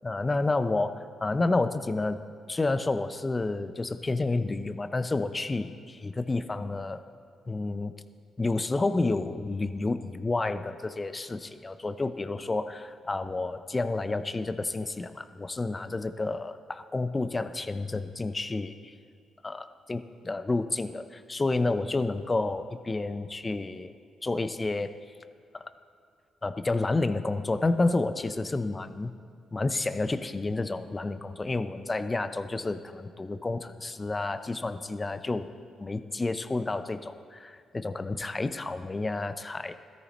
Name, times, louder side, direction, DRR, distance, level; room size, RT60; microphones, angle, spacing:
voice 1, 0.0-2.2 2.5-7.0 7.5-7.9 8.4-18.9 19.4-23.9 24.2-25.0 25.5-25.7 26.4-29.1 29.5-35.5 35.8-39.7, left 3 dB, 30° left, 11 dB, 0.8 m, -30 dB
16.5 x 13.5 x 3.1 m, 2.4 s
hypercardioid pair, 45°, 0 cm